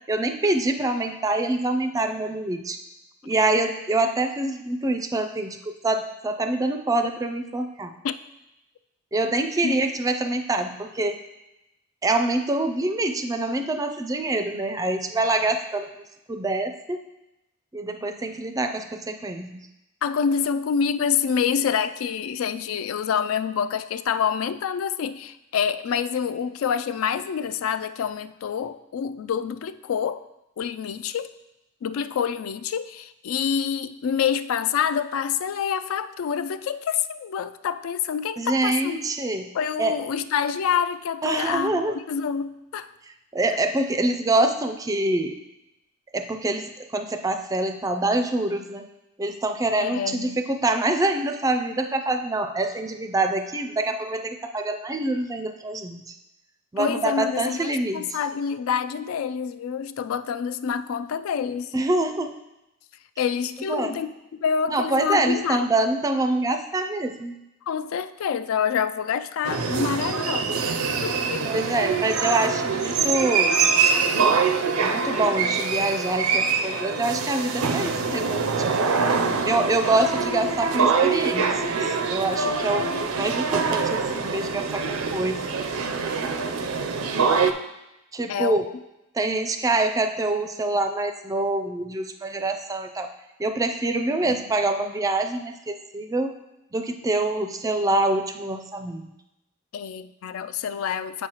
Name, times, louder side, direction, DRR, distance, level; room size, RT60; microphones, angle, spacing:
voice 1, 0.1-2.8 3.2-7.9 9.1-11.2 12.0-15.9 16.3-17.0 17.7-19.7 38.4-39.5 39.8-40.0 41.2-42.0 43.3-45.4 46.1-48.8 49.2-56.1 56.7-58.0 61.7-62.3 63.7-64.0 64.7-67.4 71.4-73.6 74.8-78.7 79.5-85.6 88.1-88.6 89.2-93.1 93.4-96.3 96.7-99.1, right 2 dB, 15° right, 6 dB, 0.4 m, -25 dB
voice 2, 20.0-30.2 30.6-31.4 31.8-39.1 39.5-42.9 49.8-50.4 56.8-61.8 63.2-64.1 64.4-65.7 67.7-70.5 71.0-71.5 88.3-88.6 94.2-94.4 99.7-101.3, left 7 dB, 75° left, 13 dB, 0.3 m, -27 dB
sound 1, 69.5-87.5, right 5 dB, 85° right, 0.5 m, -24 dB
7.8 x 6.3 x 2.9 m, 0.92 s
head